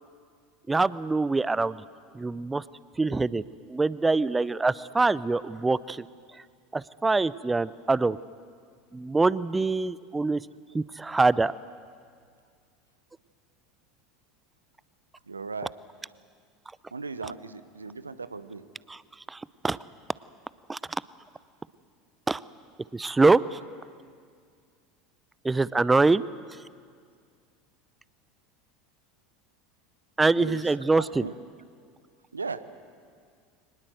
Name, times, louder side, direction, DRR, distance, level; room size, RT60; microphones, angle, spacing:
voice 1, 0.7-1.8 2.1-2.6 3.0-3.4 3.7-6.1 6.7-8.2 8.9-10.4 10.7-11.5 18.9-19.0 19.3-19.8 20.7-20.8 22.3-22.4 22.9-23.6 25.4-26.2 30.2-31.3, right 3 dB, 15° right, 19 dB, 0.6 m, -24 dB
voice 2, 15.3-15.7 16.9-18.6 30.4-30.6 31.0-31.4 32.3-32.6, right 4 dB, 90° right, 14 dB, 0.8 m, -37 dB
24.0 x 19.5 x 7.9 m, 2.1 s
figure-of-eight pair, 75°, 0 cm